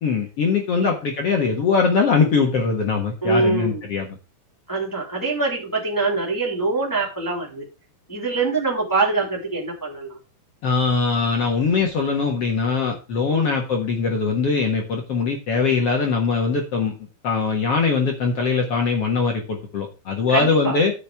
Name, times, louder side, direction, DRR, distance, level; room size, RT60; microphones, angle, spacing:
voice 1, 0.0-4.1 10.6-16.9 17.2-20.9, left 4 dB, 70° left, 1 dB, 1.4 m, -21 dB
voice 2, 3.2-3.8 4.7-7.6 8.1-10.2 13.3-13.5 20.3-20.8, right 3 dB, 5° left, -3 dB, 2.6 m, -24 dB
14.0 x 6.2 x 3.5 m, 0.33 s
omnidirectional pair, 5.0 m